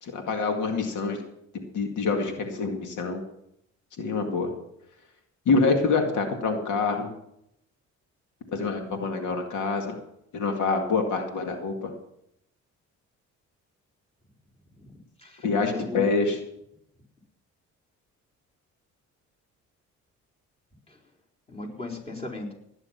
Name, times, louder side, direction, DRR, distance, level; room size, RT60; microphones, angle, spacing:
voice 1, 0.0-1.2 1.7-3.2 4.0-4.5 5.5-7.1 8.5-10.0 10.3-11.9 15.4-16.4, left 4 dB, 80° left, 4 dB, 2.1 m, -26 dB
voice 2, 15.2-16.0 20.9-21.0 21.5-22.5, left 2 dB, 20° left, -1 dB, 4.2 m, -37 dB
18.0 x 9.7 x 5.8 m, 0.78 s
cardioid pair, 90°, 30 cm